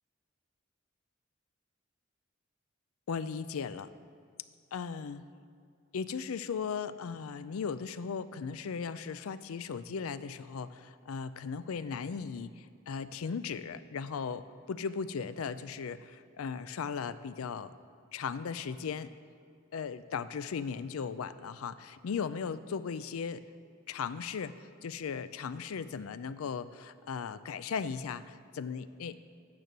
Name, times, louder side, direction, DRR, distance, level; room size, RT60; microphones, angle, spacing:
voice 1, 3.1-3.9 4.7-5.3 5.9-17.7 18.1-19.1 19.7-23.4 23.9-29.1, left 6 dB, 90° left, 14 dB, 0.4 m, -37 dB
9.4 x 7.5 x 6.6 m, 2.3 s
head